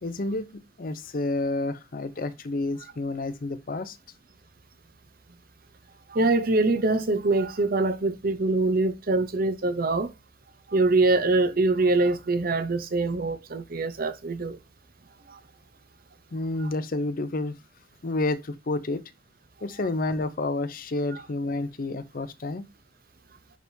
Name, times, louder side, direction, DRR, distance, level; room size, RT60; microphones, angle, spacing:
voice 1, 0.0-4.0 16.3-17.6 18.0-19.0 19.6-22.7, left 2 dB, 50° left, 0.6 m, -30 dB
voice 2, 6.1-10.1 10.7-14.6 15.3-15.4 16.6-16.7 21.1-21.2, right 2 dB, 50° right, 0.7 m, -24 dB
10.5 x 3.5 x 2.7 m
head